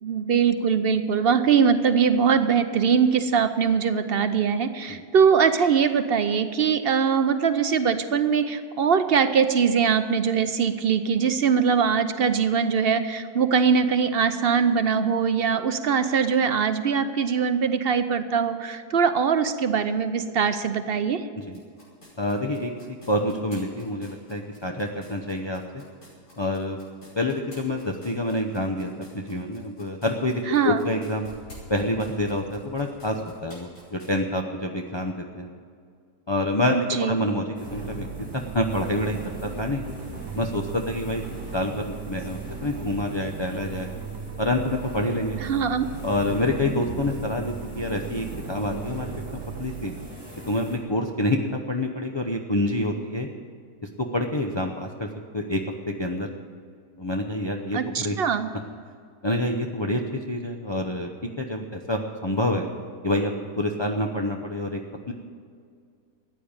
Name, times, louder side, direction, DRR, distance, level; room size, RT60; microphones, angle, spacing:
voice 1, 0.0-21.2 30.5-30.8 36.7-37.2 45.4-45.9 57.7-58.5, right 6 dB, 60° right, 10 dB, 0.6 m, -22 dB
sound 1, 21.5-34.1, equal, 75° left, 6.2 m, -49 dB
voice 2, 22.2-22.7 23.1-25.6 26.4-26.8 27.2-31.3 31.7-35.5 36.3-38.0 38.3-39.8 40.4-41.2 41.5-43.9 44.4-45.4 46.0-49.1 49.6-49.9 50.5-53.3 54.1-55.1 55.3-55.6 55.9-56.3 57.0-58.2 59.2-61.1 61.4-62.6 63.0-64.8 65.1-65.2, left 1 dB, 30° left, 1 dB, 0.5 m, -27 dB
sound 2, 37.5-50.8, equal, 15° right, 3.2 m, -40 dB
sound 3, 37.7-50.1, right 8 dB, 80° right, 1.3 m, -38 dB
14.5 x 9.9 x 8.8 m, 2.2 s
omnidirectional pair, 1.8 m